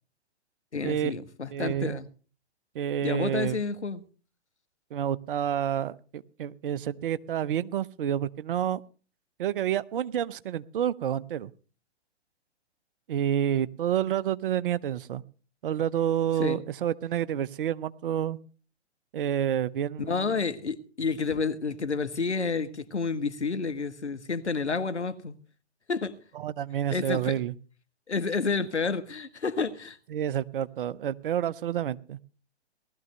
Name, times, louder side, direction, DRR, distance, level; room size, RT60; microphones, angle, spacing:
voice 1, 0.7-2.1 3.0-4.0 16.4-16.6 20.0-25.4 25.9-26.1 26.9-27.3 28.1-30.0, left 4 dB, 85° left, 1.4 m, -30 dB
voice 2, 1.5-2.0 2.7-3.6 4.9-8.8 9.4-11.5 13.1-15.2 15.6-18.4 19.1-20.4 26.3-27.5 30.1-32.2, right 10 dB, 50° right, 0.8 m, -29 dB
18.5 x 13.5 x 3.3 m
figure-of-eight pair, 120°, 33 cm